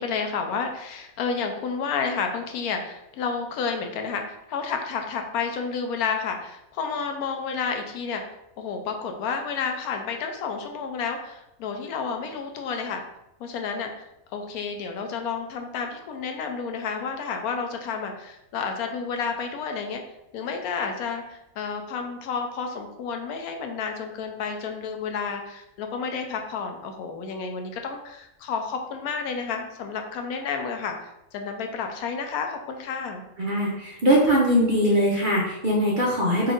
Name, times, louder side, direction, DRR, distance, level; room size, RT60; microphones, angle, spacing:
voice 1, 0.0-8.2 8.6-13.0 13.4-14.1 14.3-20.0 20.3-33.2, left 5 dB, 80° left, 5 dB, 1.0 m, -30 dB
voice 2, 33.4-36.5, equal, 45° right, -4 dB, 0.7 m, -21 dB
4.2 x 2.4 x 3.8 m, 0.86 s
omnidirectional pair, 1.6 m